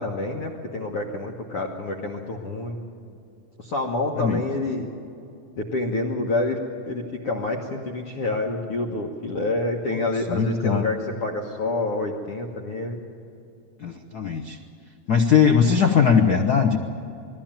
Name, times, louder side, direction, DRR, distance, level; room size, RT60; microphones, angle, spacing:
voice 1, 0.0-2.8 3.6-4.9 5.6-6.6 6.9-13.0, left 2 dB, 55° left, 0 dB, 2.1 m, -28 dB
voice 2, 10.3-10.8 13.8-14.6 15.1-16.8, left 7 dB, 85° left, 4 dB, 0.8 m, -19 dB
21.5 x 15.0 x 8.9 m, 2.6 s
omnidirectional pair, 3.4 m